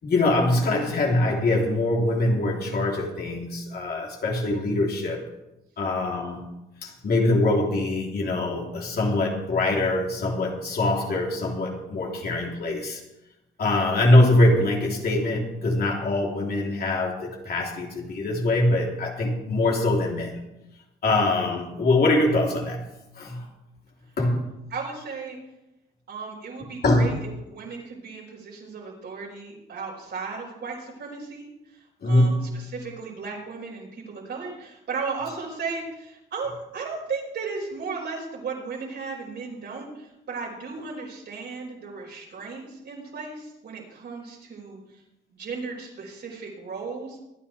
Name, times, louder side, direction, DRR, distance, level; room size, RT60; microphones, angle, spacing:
voice 1, 0.0-5.2 5.8-6.5 6.8-13.0 13.6-20.4 21.0-22.9 23.2-23.5 24.2-24.5 26.8-27.2 32.0-32.6, left 2 dB, 50° left, -2 dB, 3.6 m, -23 dB
voice 2, 24.7-25.4 26.1-31.5 31.7-44.8 45.3-47.2, right 4 dB, 60° right, -2 dB, 5.5 m, -35 dB
24.0 x 9.8 x 3.5 m, 0.92 s
cardioid pair, 90°, 20 cm